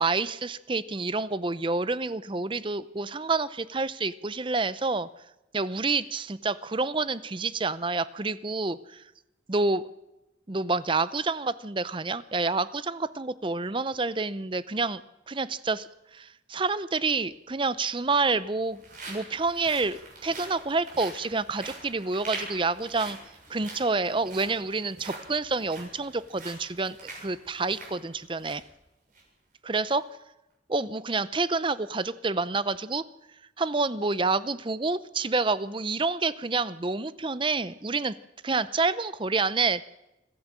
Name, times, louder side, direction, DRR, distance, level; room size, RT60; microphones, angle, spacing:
voice 1, 0.0-5.1 5.5-9.0 9.5-9.8 10.5-15.9 16.1-18.8 19.1-23.2 23.5-28.6 29.6-30.0 30.7-33.0 33.6-38.1 38.4-39.8, right 3 dB, 30° right, 16 dB, 0.7 m, -28 dB
sound 1, 17.1-17.2 18.1-28.7 29.1-29.2 29.7-29.9, right 3 dB, 50° right, 7.3 m, -44 dB
25.0 x 15.0 x 7.5 m, 0.95 s
head